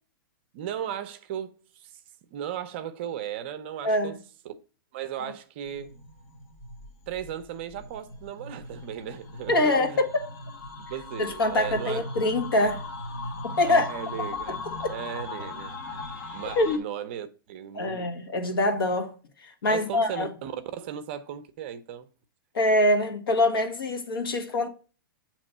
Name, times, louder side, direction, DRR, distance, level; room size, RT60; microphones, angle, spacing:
voice 1, 0.5-2.0 2.3-4.1 4.4-4.5 4.9-5.9 7.1-10.0 10.9-12.0 13.6-16.0 16.3-18.0 19.7-22.1, right 9 dB, 30° right, 0.5 m, -36 dB
voice 2, 3.8-4.2 9.5-10.1 11.2-12.8 13.4-13.9 14.5-14.6 16.6-16.8 17.7-20.3 22.5-24.7, left 1 dB, 80° left, 1.5 m, -24 dB
sound 1, 5.7-16.8, left 2 dB, 45° left, 1.1 m, -38 dB
8.0 x 3.0 x 5.4 m
hypercardioid pair, 175°, 12 cm